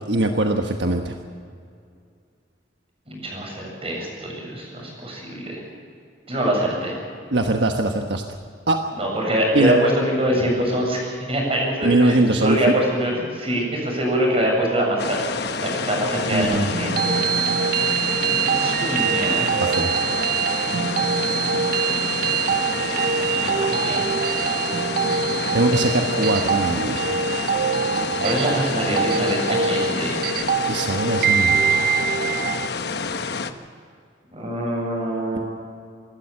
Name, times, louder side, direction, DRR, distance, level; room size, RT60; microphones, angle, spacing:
voice 1, 0.1-1.1 7.3-8.2 8.7-8.8 9.5-9.8 11.8-12.6 16.3-16.7 19.6-19.9 25.5-27.1 30.7-31.7, right 2 dB, 75° right, 4 dB, 1.3 m, -21 dB
voice 2, 3.1-5.6 6.3-7.0 8.9-17.2 18.2-19.6 22.8-24.0 28.2-30.2 34.3-35.4, right 1 dB, 35° right, -1 dB, 7.3 m, -24 dB
sound 1, 15.0-33.5, left 4 dB, 65° left, 1.1 m, -28 dB
sound 2, 16.7-32.7, right 6 dB, 55° right, 0.6 m, -24 dB
26.0 x 12.5 x 8.8 m, 2.3 s
head